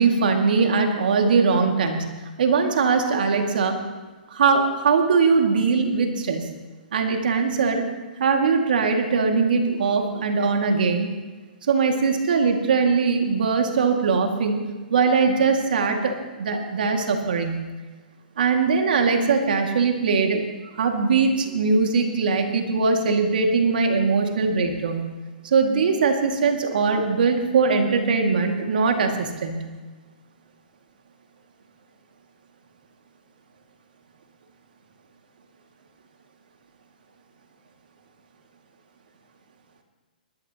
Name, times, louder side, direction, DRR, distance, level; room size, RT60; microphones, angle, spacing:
voice 1, 0.0-2.1 2.4-3.8 4.3-6.5 6.9-7.9 8.2-11.1 11.6-14.6 14.9-17.6 18.4-20.4 20.7-25.1 25.4-29.7, right 4 dB, 70° right, 3 dB, 2.1 m, -21 dB
21.5 x 12.5 x 2.9 m, 1.3 s
hypercardioid pair, 125°, 5 cm